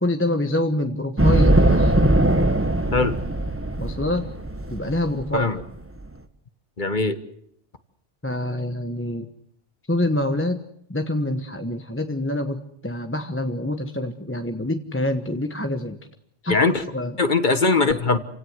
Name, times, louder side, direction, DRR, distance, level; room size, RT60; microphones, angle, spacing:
voice 1, 0.0-2.0 3.8-4.3 4.7-5.5 8.2-9.3 9.9-10.6 10.9-16.0 16.4-17.1 17.9-18.0, left 1 dB, 10° left, 6 dB, 1.2 m, -26 dB
sound 1, 1.2-6.1, right 1 dB, 10° right, 1.3 m, -20 dB
voice 2, 6.8-7.2 16.5-16.8 17.2-18.2, left 3 dB, 45° left, 10 dB, 1.5 m, -20 dB
28.5 x 17.0 x 8.1 m, 0.72 s
omnidirectional pair, 1.2 m